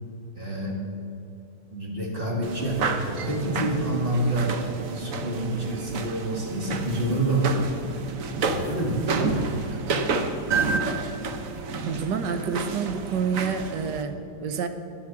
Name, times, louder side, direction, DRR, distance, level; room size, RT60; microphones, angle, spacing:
voice 1, 0.4-0.8 1.7-4.6 4.9-7.7 8.5-10.0, right 1 dB, 30° right, -1 dB, 2.1 m, -28 dB
sound 1, 2.4-14.0, right 4 dB, 60° right, 1.1 m, -30 dB
voice 2, 11.9-14.7, right 6 dB, 85° right, 8 dB, 1.5 m, -28 dB
10.5 x 8.0 x 7.2 m, 2.8 s
omnidirectional pair, 1.8 m